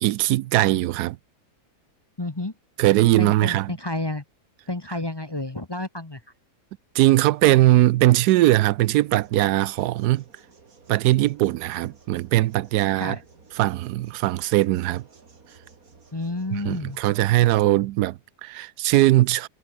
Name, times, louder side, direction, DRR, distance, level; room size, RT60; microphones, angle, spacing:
voice 1, 0.0-1.2 2.8-3.7 6.9-10.2 10.9-13.2 13.6-15.0 16.7-19.5, right 16 dB, 85° right, 1.1 m, -20 dB
voice 2, 2.2-2.5 3.2-4.2 4.7-6.2 12.9-13.2 16.1-17.0, left 2 dB, 20° left, 1.0 m, -30 dB
sound 1, 8.9-17.3, right 4 dB, 60° right, 2.8 m, -54 dB
omnidirectional pair, 1.7 m